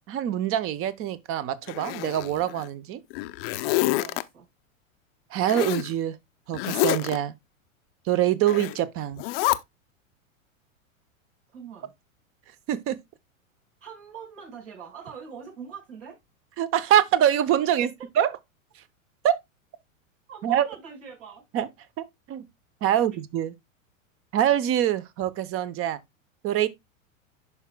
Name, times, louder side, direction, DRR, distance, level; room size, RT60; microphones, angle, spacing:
voice 1, 0.1-3.0 5.3-6.2 6.5-7.3 8.1-9.2 12.7-13.0 16.6-17.9 18.2-18.3 19.2-19.4 20.4-20.7 21.5-21.7 22.3-22.4 22.8-23.5 24.3-26.0 26.4-26.7, right 11 dB, 35° right, 0.8 m, -24 dB
Zipper (clothing), 1.7-2.7 3.1-4.2 5.5-5.9 6.5-7.2 8.5-8.8 9.2-9.6, left 19 dB, 45° left, 0.6 m, -27 dB
voice 2, 3.9-4.5 11.5-11.9 13.8-16.2 17.8-17.9 20.3-21.4 22.9-23.0, right 6 dB, 70° right, 5.1 m, -43 dB
11.0 x 4.7 x 2.2 m
hypercardioid pair, 100°, 40 cm